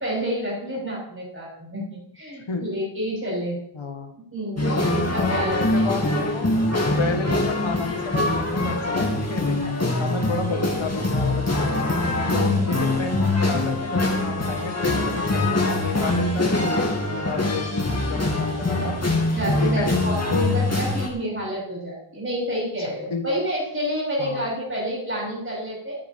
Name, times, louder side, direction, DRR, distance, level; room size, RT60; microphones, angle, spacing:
voice 1, 0.0-3.6 4.2-6.1 12.2-12.7 19.3-26.0, equal, 30° right, -5 dB, 6.9 m, -29 dB
voice 2, 3.7-4.2 5.2-6.6 7.0-9.6 10.0-11.8 12.3-19.0 19.6-19.9 20.3-20.6 22.8-23.3 24.2-24.5, left 4 dB, 80° left, 5 dB, 1.9 m, -31 dB
sound 1, 4.6-21.1, left 2 dB, 35° left, 3.0 m, -23 dB
13.5 x 10.5 x 4.7 m, 0.72 s
cardioid pair, 40°, 47 cm